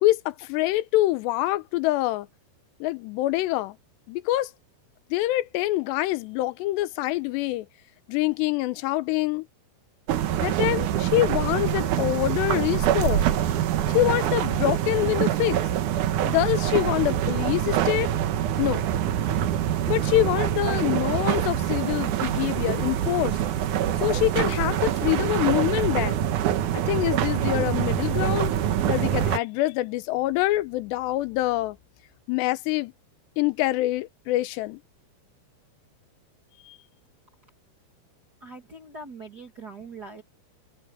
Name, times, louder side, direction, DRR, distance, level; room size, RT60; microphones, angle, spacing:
voice 1, 0.0-2.3 2.8-3.8 4.1-4.5 5.1-7.7 8.1-9.5 10.4-13.3 13.9-15.6 16.3-18.1 18.6-18.8 19.9-23.4 24.0-26.2 26.7-28.5 28.9-31.8 32.3-32.9 33.4-34.8 36.7-36.8, left 16 dB, 85° left, 3.0 m, -25 dB
sound 1, 10.1-29.4, right 11 dB, 65° right, 2.1 m, -25 dB
voice 2, 38.4-40.2, right 3 dB, 45° right, 1.3 m, -42 dB
omnidirectional pair, 4.8 m